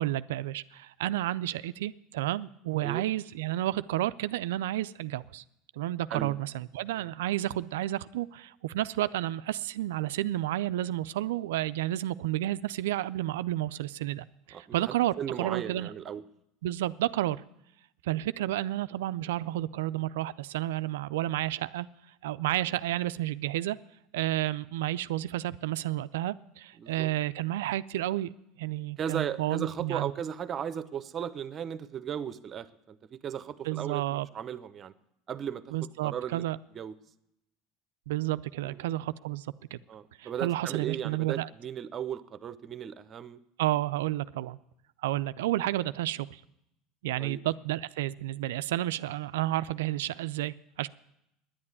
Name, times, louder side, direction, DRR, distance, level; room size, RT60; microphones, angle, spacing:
voice 1, 0.0-5.4 5.7-15.1 15.4-15.9 16.6-17.4 18.0-21.9 22.2-23.8 24.1-28.3 28.6-30.1 33.6-34.3 35.7-36.6 38.1-39.8 40.2-41.5 43.6-44.6 45.0-46.4 47.0-50.9, right 14 dB, 80° right, 15 dB, 0.4 m, -31 dB
voice 2, 14.5-16.2 26.8-27.1 29.0-34.9 35.3-35.7 36.0-36.5 36.7-36.9 38.6-38.8 39.9-43.4 47.2-47.4, right 8 dB, 40° right, 15 dB, 0.8 m, -36 dB
10.0 x 8.7 x 9.8 m, 0.81 s
hypercardioid pair, 90°, 0 cm